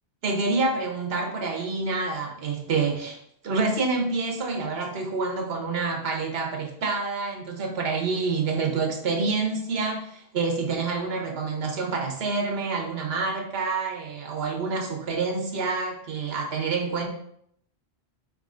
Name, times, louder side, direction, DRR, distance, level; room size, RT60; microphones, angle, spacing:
voice 1, 0.2-3.2 3.4-17.1, right 4 dB, 65° right, 2 dB, 1.0 m, -27 dB
4.1 x 3.7 x 2.5 m, 0.69 s
omnidirectional pair, 1.1 m